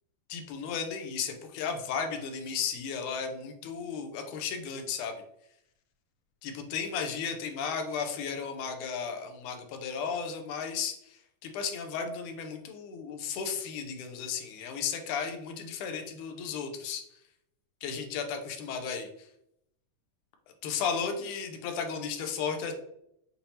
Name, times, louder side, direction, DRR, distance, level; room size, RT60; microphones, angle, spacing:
voice 1, 0.3-5.1 6.4-17.2 17.8-19.3 20.6-22.7, left 6 dB, 75° left, 5 dB, 2.0 m, -34 dB
6.9 x 2.7 x 2.8 m, 0.76 s
omnidirectional pair, 3.8 m